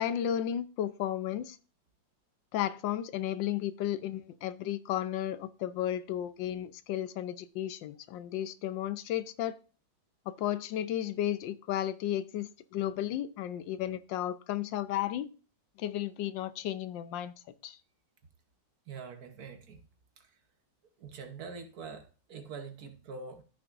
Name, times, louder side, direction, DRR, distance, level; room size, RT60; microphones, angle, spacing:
voice 1, 0.0-1.6 2.5-9.6 10.3-15.3 15.8-17.3 17.6-17.8, left 11 dB, 80° left, 1.4 m, -33 dB
voice 2, 18.9-19.8 21.0-22.0 22.3-23.4, right 5 dB, 60° right, 1.4 m, -44 dB
14.0 x 6.1 x 2.5 m
omnidirectional pair, 2.0 m